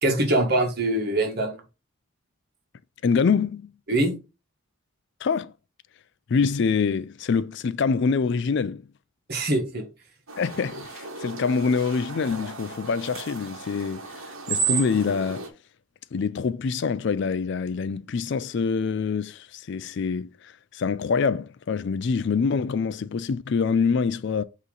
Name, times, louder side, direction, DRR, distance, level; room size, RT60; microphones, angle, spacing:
voice 1, 0.0-1.6 3.9-4.2 9.3-9.9, right 1 dB, 45° right, 1.5 m, -23 dB
voice 2, 3.0-3.7 5.2-5.5 6.3-8.8 10.4-15.5 16.1-24.4, left 5 dB, 55° left, 0.4 m, -25 dB
sound 1, 10.3-15.5, right 6 dB, 75° right, 1.2 m, -33 dB
8.1 x 3.1 x 3.9 m
head